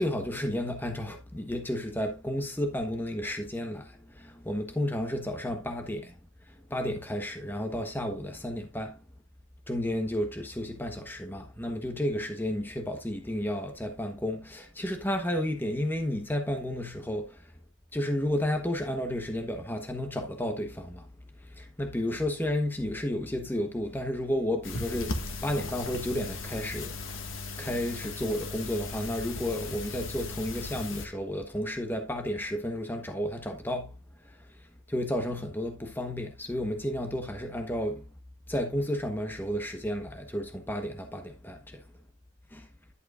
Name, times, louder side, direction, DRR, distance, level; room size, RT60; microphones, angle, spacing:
voice 1, 0.0-6.2 6.5-9.0 9.7-17.5 17.9-21.1 21.4-27.0 27.6-34.0 34.2-34.4 34.9-38.0 38.5-41.8 42.5-42.7, left 1 dB, 10° left, 1.1 m, -32 dB
sound 1, 24.6-31.1, left 3 dB, 85° left, 1.8 m, -37 dB
11.0 x 7.7 x 2.5 m
head